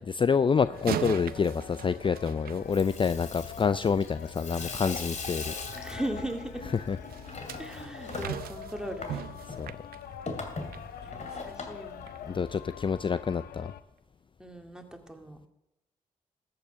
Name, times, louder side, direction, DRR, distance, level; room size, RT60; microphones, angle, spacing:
voice 1, 0.0-5.5 6.7-7.0 9.6-9.7 12.3-13.7, left 6 dB, 35° left, 14 dB, 0.4 m, -27 dB
sound 1, 0.6-13.8, left 8 dB, 85° left, 0.7 m, -45 dB
sound 2, 0.7-3.3 7.1-10.9 11.3-11.5 12.1-12.2, right 11 dB, 80° right, 0.6 m, -39 dB
Water tap faucet / Sink (filling or washing), 2.5-12.7, left 3 dB, 50° left, 2.5 m, -41 dB
voice 2, 5.7-6.6 7.6-9.3 11.0-12.1 14.4-15.4, right 1 dB, 5° right, 3 dB, 2.3 m, -38 dB
13.5 x 8.8 x 5.7 m, 0.90 s
supercardioid pair, 50°, 15 cm